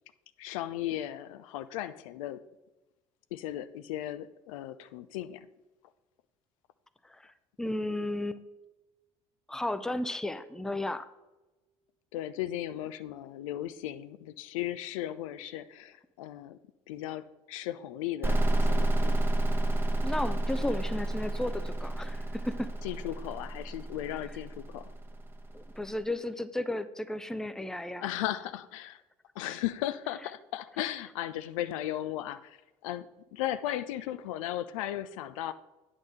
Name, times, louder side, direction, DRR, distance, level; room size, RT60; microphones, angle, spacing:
voice 1, 0.4-2.4 3.3-5.5 12.1-16.6 16.9-19.2 22.8-24.9 28.0-29.0 29.4-32.6 32.8-33.1 33.3-35.5, left 13 dB, 70° left, 13 dB, 0.4 m, -36 dB
voice 2, 7.0-8.4 9.5-11.1 20.0-22.7 25.5-28.0, left 1 dB, 5° left, 12 dB, 0.5 m, -34 dB
sound 1, 18.2-25.8, right 1 dB, 10° right, 0.9 m, -30 dB
8.9 x 3.7 x 6.4 m, 1.1 s
figure-of-eight pair, 60°, 18 cm